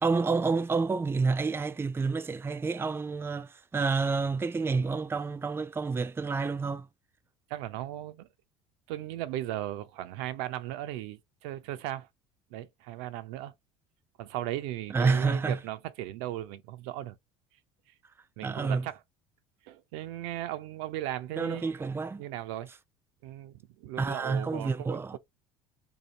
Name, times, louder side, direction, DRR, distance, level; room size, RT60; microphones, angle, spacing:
voice 1, 0.0-6.9 14.9-15.6 18.4-18.9 21.4-22.2 24.0-25.2, right 4 dB, 15° right, 0.5 m, -29 dB
voice 2, 7.5-8.3 8.9-12.1 12.5-13.5 14.2-17.2 18.4-19.0 19.6-21.7 22.2-22.7 23.2-25.2, right 13 dB, 75° right, 0.5 m, -37 dB
2.7 x 2.4 x 4.1 m
hypercardioid pair, 75°, 13 cm